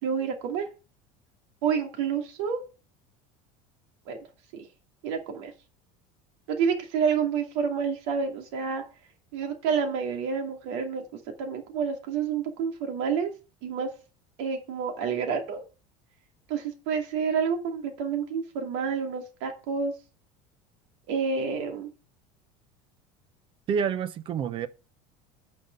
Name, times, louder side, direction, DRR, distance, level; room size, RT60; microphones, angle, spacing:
voice 1, 0.0-0.7 1.6-2.6 4.1-4.3 4.5-4.7 5.0-5.5 6.5-8.8 9.3-11.0 11.4-13.3 13.6-13.9 14.4-15.6 16.5-19.9 21.1-21.9, right 6 dB, 80° right, 2.5 m, -29 dB
voice 2, 23.7-24.7, right 7 dB, 35° right, 0.7 m, -28 dB
9.0 x 5.2 x 5.4 m
cardioid pair, 150°, 14 cm